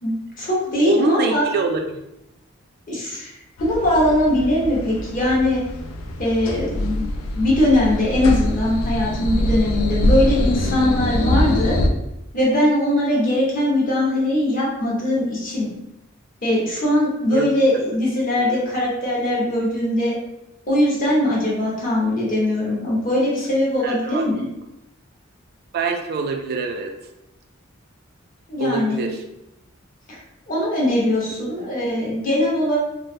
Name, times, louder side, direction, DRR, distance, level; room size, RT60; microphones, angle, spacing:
voice 1, 0.0-1.4 2.9-3.3 3.6-5.6 6.2-11.8 12.3-15.7 16.4-20.1 20.7-24.4 28.5-29.0 30.1-30.2 30.5-32.8, left 1 dB, 45° left, -5 dB, 0.9 m, -21 dB
voice 2, 0.8-2.0 17.3-17.5 18.4-18.6 23.8-24.2 25.7-26.9 28.6-29.2 31.5-31.7, right 4 dB, 50° right, 4 dB, 0.3 m, -25 dB
sound 1, 3.6-11.9, left 1 dB, 80° left, 0.3 m, -23 dB
3.1 x 2.0 x 2.6 m, 0.88 s
head